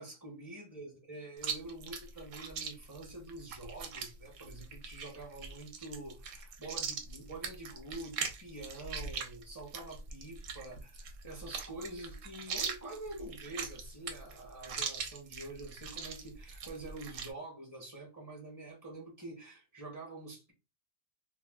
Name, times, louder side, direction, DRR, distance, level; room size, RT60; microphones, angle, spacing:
voice 1, 0.0-20.5, right 2 dB, 20° right, 0.6 m, -46 dB
Chewing mastication, 1.4-17.3, right 6 dB, 75° right, 1.0 m, -41 dB
2.4 x 2.2 x 3.4 m
omnidirectional pair, 1.4 m